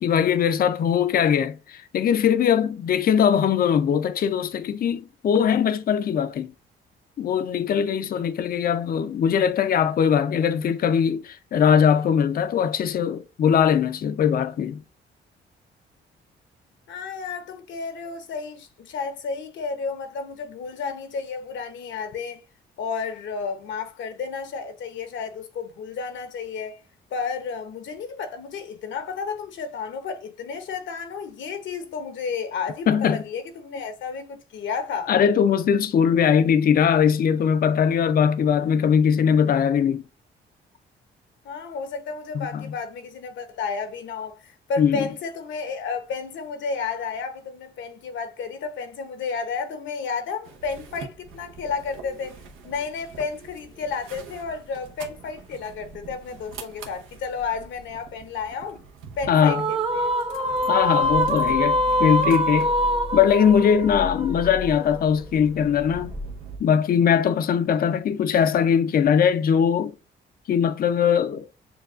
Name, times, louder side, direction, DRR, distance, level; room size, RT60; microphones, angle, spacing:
voice 1, 0.0-6.5 7.2-14.8 32.9-33.2 35.1-40.0 42.3-42.6 44.8-45.1 59.3-59.6 60.7-62.7 63.1-66.1 66.6-69.9 70.5-71.4, left 8 dB, 50° left, 0.5 m, -21 dB
voice 2, 16.9-22.4 22.8-26.8 27.1-35.1 41.4-52.4 52.6-58.8 59.2-60.1, left 5 dB, 70° left, 0.8 m, -32 dB
sound 1, 50.4-66.6, right 1 dB, 90° right, 0.8 m, -40 dB
sound 2, 59.5-64.9, equal, 30° right, 0.8 m, -24 dB
6.8 x 2.3 x 2.4 m
cardioid pair, 90°, 20 cm